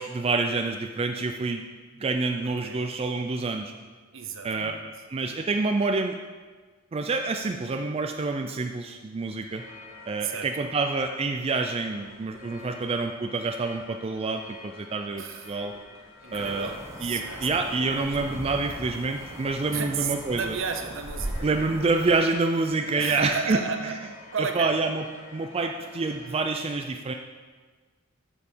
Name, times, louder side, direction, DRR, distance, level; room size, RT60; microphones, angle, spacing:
voice 1, 0.0-1.6 2.0-3.7 4.4-4.8 5.1-6.2 6.9-9.6 10.1-15.7 16.3-16.7 17.0-20.5 21.4-23.6 24.6-25.0 25.3-27.1, right 3 dB, 30° right, 5 dB, 0.4 m, -27 dB
voice 2, 2.4-2.8 4.1-4.9 10.2-10.7 12.6-12.9 15.2-15.5 16.2-18.2 19.7-21.6 22.9-24.0 24.3-24.8, right 5 dB, 65° right, 6 dB, 0.9 m, -33 dB
sound 1, 9.5-26.4, left 3 dB, 80° left, 2.5 m, -49 dB
sound 2, 16.3-22.1, right 1 dB, 15° right, 1.1 m, -39 dB
8.3 x 7.2 x 4.5 m, 1.4 s
head